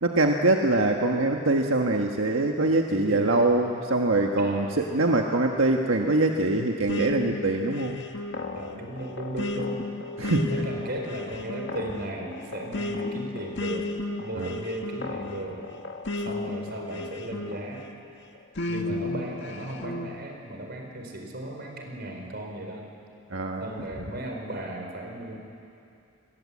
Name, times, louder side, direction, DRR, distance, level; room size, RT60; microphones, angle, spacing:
voice 1, 0.0-8.0 10.2-10.6 14.4-14.6 23.3-23.7, right 2 dB, 90° right, 2 dB, 1.5 m, -24 dB
voice 2, 2.9-3.6 4.4-4.8 8.5-9.9 10.5-13.9 14.2-15.6 16.2-17.9 18.7-22.9 23.6-25.4, right 1 dB, 55° right, 2 dB, 4.7 m, -36 dB
sound 1, 6.9-17.9 18.6-20.1, left 2 dB, 60° left, 1.9 m, -34 dB
29.0 x 21.0 x 8.7 m, 2.5 s
head